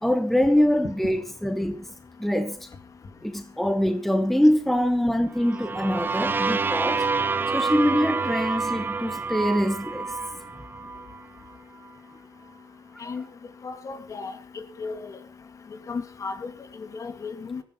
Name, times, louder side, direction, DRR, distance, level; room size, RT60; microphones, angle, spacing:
voice 1, 0.0-1.9 2.2-2.6 3.2-7.0 7.5-10.2, equal, ahead, 1.8 m, -24 dB
sound 1, 5.4-11.2, right 4 dB, 25° right, 1.0 m, -28 dB
voice 2, 13.6-14.3 14.8-15.0 15.9-16.5 17.0-17.6, left 4 dB, 40° left, 2.6 m, -34 dB
18.0 x 15.0 x 4.3 m
cardioid pair, 105°, 9 cm